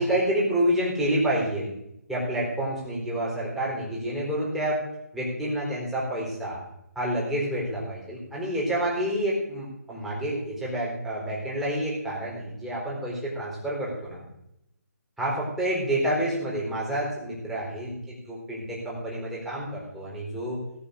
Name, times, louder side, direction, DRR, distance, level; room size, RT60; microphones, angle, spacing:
voice 1, 0.0-1.7 2.1-4.8 5.1-6.6 6.9-14.3 15.2-20.6, right 1 dB, ahead, -7 dB, 4.3 m, -28 dB
17.0 x 6.9 x 6.6 m, 0.82 s
figure-of-eight pair, 155°, 9 cm